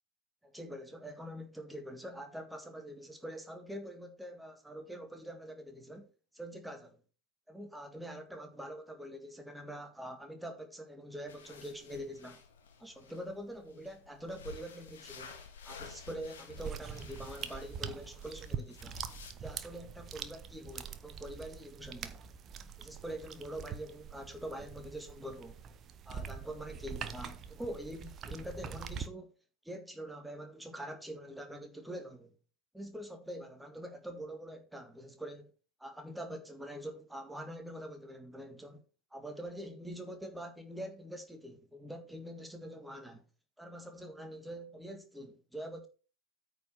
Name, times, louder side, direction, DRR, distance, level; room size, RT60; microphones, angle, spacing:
voice 1, 0.4-7.0 7.5-12.4 12.8-15.3 15.6-19.0 19.4-22.2 22.8-25.6 26.1-29.3 29.6-32.4 32.7-35.5 35.8-38.8 39.1-43.2 43.6-45.9, equal, 5° right, 1.8 m, -44 dB
sound 1, 11.3-19.3, left 5 dB, 60° left, 2.1 m, -52 dB
sound 2, 16.6-29.1, right 7 dB, 30° right, 1.0 m, -44 dB
9.0 x 5.1 x 6.0 m
figure-of-eight pair, 90°, 0 cm